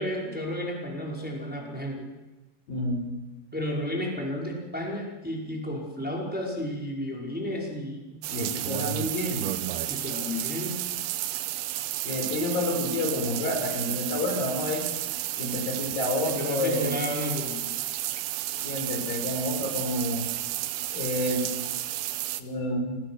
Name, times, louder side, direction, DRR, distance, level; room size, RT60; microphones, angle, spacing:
voice 1, 0.0-2.1 3.5-8.2 9.9-10.8 16.2-17.6, left 1 dB, ahead, -2 dB, 4.8 m, -32 dB
voice 2, 2.7-3.0 8.3-9.5 12.0-14.9 15.4-17.0 18.6-20.3 20.9-21.5 22.4-23.0, left 1 dB, 60° left, 3 dB, 6.6 m, -29 dB
sound 1, 8.2-22.4, right 14 dB, 80° right, 2.8 m, -32 dB
27.0 x 20.5 x 6.2 m, 1.1 s
omnidirectional pair, 4.7 m